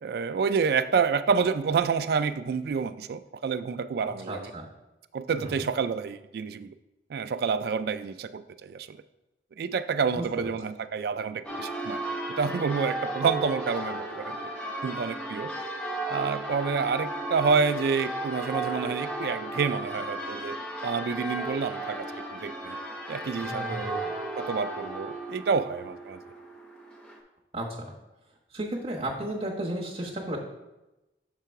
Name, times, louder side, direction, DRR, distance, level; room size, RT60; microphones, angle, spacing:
voice 1, 0.0-4.5 5.1-6.7 7.1-9.0 9.6-12.0 12.4-14.5 14.8-15.5 16.1-20.6 20.8-22.8 23.1-24.0 24.4-26.2, right 5 dB, 60° right, 12 dB, 0.3 m, -28 dB
voice 2, 4.0-4.6 5.3-5.6 10.1-10.5 23.4-24.1 27.5-27.9 28.5-30.4, right 1 dB, 35° right, -2 dB, 1.2 m, -34 dB
Church bell, 11.4-27.2, right 1 dB, 5° left, 0.7 m, -35 dB
6.7 x 3.8 x 4.6 m, 1.0 s
head